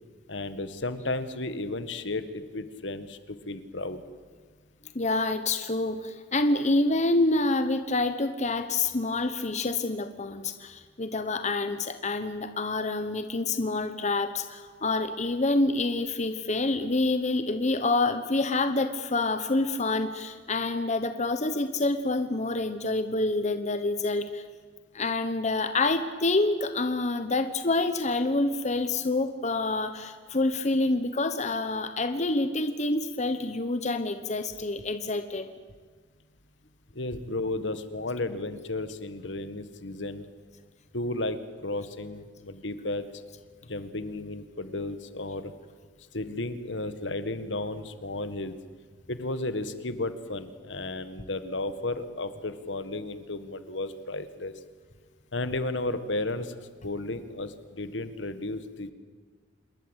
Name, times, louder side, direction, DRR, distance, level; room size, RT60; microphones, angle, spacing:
voice 1, 0.3-4.0 36.9-40.2 40.9-43.1 43.6-45.5 46.1-48.6 49.1-54.5 55.3-56.5 56.8-58.9, left 2 dB, 70° left, 11 dB, 1.7 m, -33 dB
voice 2, 4.9-24.4 24.9-35.5, left 2 dB, 40° left, 9 dB, 1.1 m, -27 dB
27.0 x 21.0 x 8.3 m, 1.5 s
head